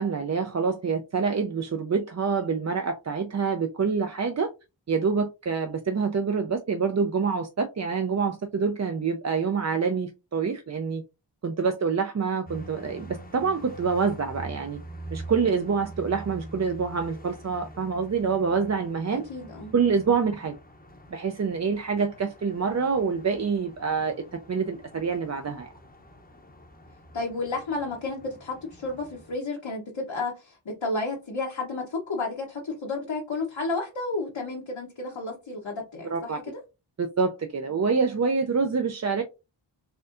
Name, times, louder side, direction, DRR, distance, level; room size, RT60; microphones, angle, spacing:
voice 1, 0.0-4.5 4.9-11.0 11.4-14.8 15.1-19.2 19.7-20.6 21.1-25.7 36.0-36.4 37.0-39.2, right 5 dB, 35° right, 0.4 m, -26 dB
sound 1, 12.5-29.4, right 1 dB, 20° left, 0.7 m, -45 dB
voice 2, 19.1-19.7 27.1-36.6, left 3 dB, 65° left, 1.0 m, -32 dB
4.2 x 2.6 x 2.5 m
wide cardioid pair, 40°, 48 cm